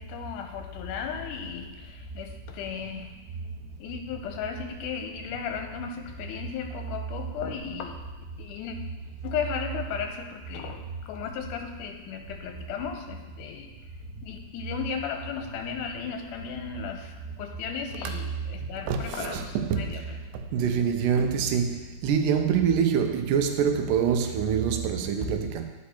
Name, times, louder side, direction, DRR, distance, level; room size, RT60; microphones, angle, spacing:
voice 1, 0.0-3.1 3.8-8.0 8.4-8.8 9.2-13.7 14.2-20.2, left 7 dB, 80° left, 2.2 m, -35 dB
voice 2, 18.8-20.0 20.5-25.7, right 7 dB, 85° right, 2.2 m, -25 dB
9.4 x 5.1 x 4.3 m
omnidirectional pair, 3.6 m